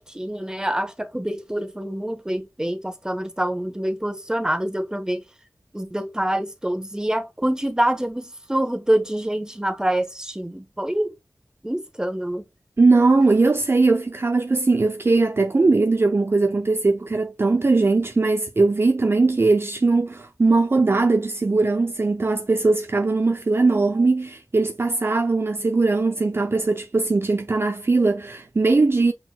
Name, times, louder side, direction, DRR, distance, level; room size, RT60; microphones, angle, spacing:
voice 1, 0.1-5.2 5.7-11.1 11.6-12.4, right 1 dB, 10° right, 1.0 m, -26 dB
voice 2, 12.8-29.1, right 3 dB, 45° right, 0.4 m, -20 dB
5.8 x 3.8 x 2.2 m
cardioid pair, 45°, 6 cm